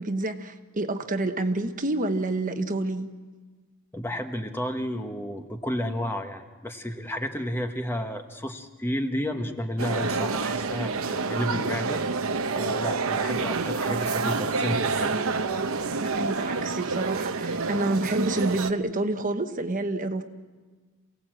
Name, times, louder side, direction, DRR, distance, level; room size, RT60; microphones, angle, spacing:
voice 1, 0.0-3.1 16.0-20.2, right 2 dB, 40° right, 7 dB, 1.1 m, -28 dB
voice 2, 3.9-12.0 12.5-15.2, equal, 10° left, 5 dB, 1.2 m, -31 dB
sound 1, 9.8-18.7, right 4 dB, 70° right, 0.9 m, -28 dB
28.0 x 17.5 x 7.7 m, 1.4 s
head